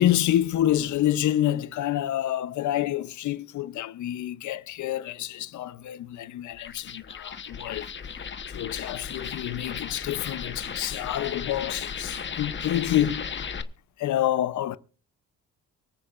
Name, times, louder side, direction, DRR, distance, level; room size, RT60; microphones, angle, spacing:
voice 1, 0.0-7.9 8.5-13.3 14.0-14.8, left 12 dB, 70° left, 0.8 m, -27 dB
sound 1, 6.5-13.6, left 6 dB, 40° left, 1.1 m, -36 dB
24.5 x 8.7 x 2.6 m
cardioid pair, 90°, 30 cm